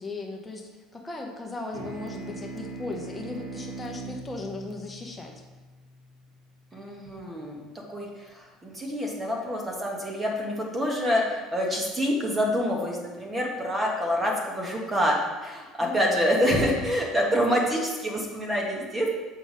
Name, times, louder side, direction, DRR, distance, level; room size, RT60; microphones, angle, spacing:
voice 1, 0.0-5.4 15.8-16.3, left 2 dB, 10° left, 0 dB, 1.0 m, -37 dB
sound 1, 1.7-6.6, right 3 dB, 85° right, 1.9 m, -41 dB
voice 2, 6.7-7.6 7.9-15.2 15.4-19.1, equal, 15° right, -1 dB, 1.3 m, -27 dB
6.6 x 3.8 x 5.0 m, 1.2 s
supercardioid pair, 110°, 0 cm